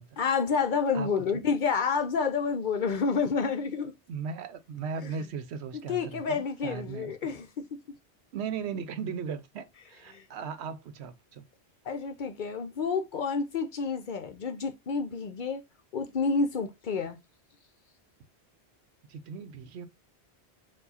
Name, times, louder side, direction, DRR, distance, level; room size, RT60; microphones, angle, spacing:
voice 1, 0.2-3.9 5.0-5.2 5.9-7.7 10.1-10.2 11.9-15.6 15.9-17.2, left 5 dB, 55° left, 0.6 m, -29 dB
voice 2, 0.9-1.4 4.1-7.3 8.3-11.4 19.1-19.9, right 6 dB, 80° right, 0.9 m, -37 dB
4.5 x 2.5 x 4.0 m
omnidirectional pair, 1.1 m